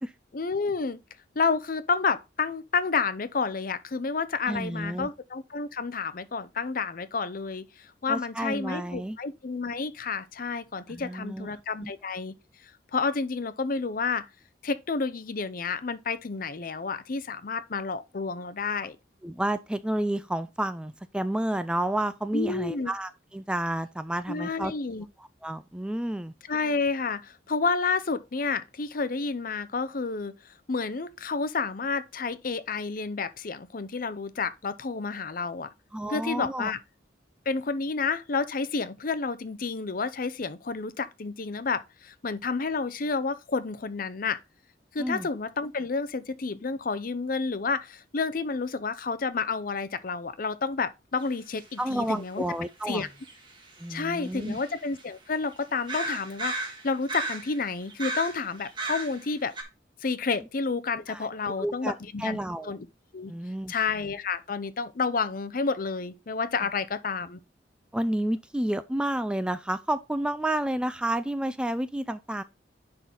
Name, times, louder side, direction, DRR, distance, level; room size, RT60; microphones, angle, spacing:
voice 1, 0.3-1.0 1.4-12.4 12.9-14.3 14.6-19.0 22.3-22.9 24.3-25.1 26.5-30.3 30.7-35.7 36.1-36.8 37.5-44.4 44.9-52.4 52.9-53.1 53.9-56.6 56.8-59.5 60.0-62.4 62.6-62.9 63.1-63.3 63.7-67.4, left 4 dB, 50° left, 0.6 m, -30 dB
voice 2, 4.5-5.1 8.1-9.2 10.9-11.9 19.2-24.7 25.2-26.3 35.9-36.7 45.0-45.3 51.8-53.1 53.8-54.6 61.1-62.8 63.3-63.7 66.6-66.7 67.9-72.4, right 1 dB, 5° right, 0.3 m, -30 dB
sound 1, 51.2-51.3 51.6-51.7 53.2-55.0 55.5-55.6 55.9-57.6 57.9-59.3 59.5-59.6, right 2 dB, 25° right, 1.7 m, -35 dB
10.0 x 3.9 x 3.9 m
head